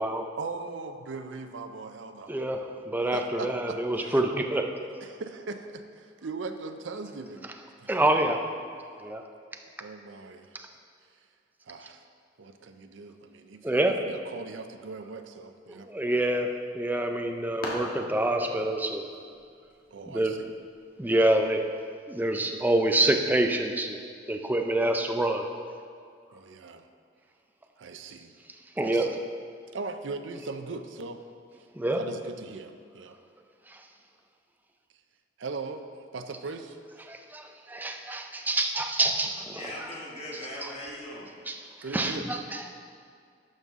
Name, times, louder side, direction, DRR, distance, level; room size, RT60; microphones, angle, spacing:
voice 1, 0.4-2.3 3.0-4.2 5.0-7.5 7.8-8.2 9.8-10.5 11.6-12.0 12.4-15.9 19.9-20.6 26.3-26.9 27.8-28.4 28.8-29.0 29.7-31.2 32.0-33.2 35.4-35.9 36.1-36.8 41.8-42.3, right 3 dB, 90° right, 8 dB, 0.5 m, -39 dB
voice 2, 2.3-4.6 7.9-8.4 9.0-9.2 10.5-10.7 13.6-14.0 15.7-19.0 20.1-20.3 21.0-21.7 22.1-24.0 24.3-25.5 28.8-29.2 31.8-32.0 33.7-33.8 37.1-39.6 40.6-40.7 41.5-41.6 41.9-42.7, right 1 dB, 10° right, 4 dB, 0.5 m, -27 dB
sound 1, 16.7-21.8, left 1 dB, 55° left, 1.6 m, -44 dB
voice 3, 39.5-41.3 42.1-42.5, left 1 dB, 35° left, -4 dB, 1.3 m, -40 dB
11.5 x 5.4 x 3.6 m, 2.2 s
head